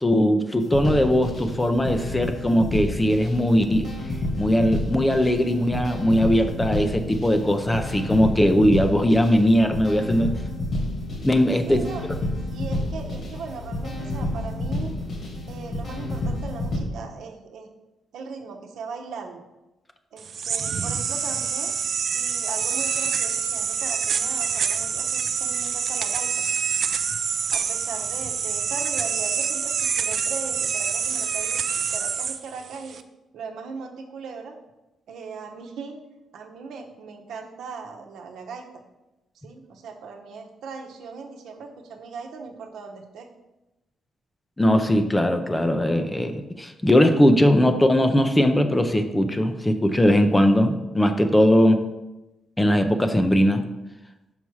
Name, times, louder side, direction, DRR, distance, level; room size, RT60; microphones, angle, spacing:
voice 1, 0.0-3.9 4.4-10.3 11.2-11.8 15.6-15.7 44.6-51.8 52.6-53.6, equal, 10° left, 7 dB, 0.6 m, -20 dB
sound 1, 0.6-16.8, left 1 dB, 45° left, 1.8 m, -30 dB
voice 2, 11.7-15.0 15.5-17.7 18.1-19.4 20.1-21.7 22.1-26.3 27.5-33.0 33.3-34.6 35.1-36.0 36.3-38.7 39.3-43.3, right 5 dB, 75° right, 3 dB, 1.0 m, -38 dB
sound 2, 20.2-33.0, right 7 dB, 55° right, 0.4 m, -26 dB
5.9 x 5.5 x 4.7 m, 0.98 s
cardioid pair, 125°, 0 cm